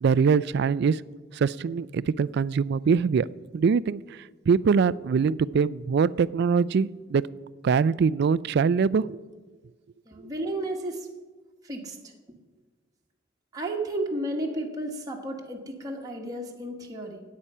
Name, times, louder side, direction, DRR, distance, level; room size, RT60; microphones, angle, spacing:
voice 1, 0.0-1.0 1.3-3.3 3.5-7.2 7.6-9.2, right 5 dB, 55° right, 19 dB, 0.3 m, -23 dB
voice 2, 10.1-11.1 11.6-12.0 13.5-17.2, right 1 dB, 20° right, 0 dB, 1.4 m, -32 dB
17.0 x 8.6 x 5.5 m, 1.3 s
head